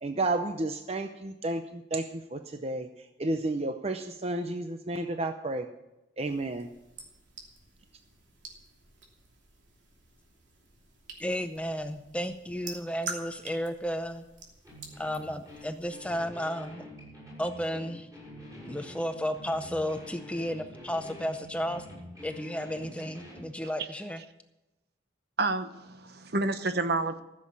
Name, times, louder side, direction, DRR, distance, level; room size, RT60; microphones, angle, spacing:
voice 1, 0.0-2.9 3.2-5.7 6.2-6.7, right 2 dB, 35° right, 7 dB, 0.6 m, -31 dB
sound 1, 6.2-16.2, right 3 dB, 85° right, 2.9 m, -47 dB
voice 2, 11.2-14.2 15.0-16.9 17.4-18.1 18.6-21.9 22.2-24.2, equal, 5° left, 8 dB, 0.6 m, -33 dB
sound 2, 14.6-23.5, equal, 20° right, 6.8 m, -47 dB
voice 3, 25.4-27.2, right 3 dB, 60° right, 10 dB, 1.0 m, -29 dB
14.5 x 7.4 x 8.6 m, 0.98 s
head